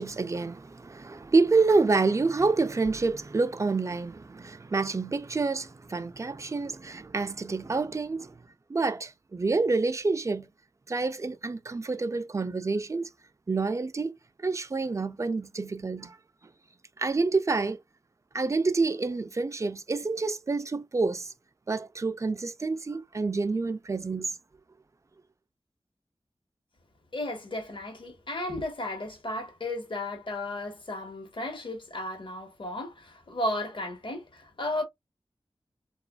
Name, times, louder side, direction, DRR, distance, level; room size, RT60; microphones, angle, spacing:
voice 1, 0.0-8.4 8.7-10.5 10.9-13.1 13.5-14.1 14.4-16.2 17.0-17.8 18.3-21.3 21.7-24.4, right 3 dB, 30° right, 0.4 m, -28 dB
voice 2, 27.1-34.8, left 1 dB, 60° left, 1.1 m, -34 dB
2.9 x 2.4 x 2.2 m
wide cardioid pair, 70°, 10 cm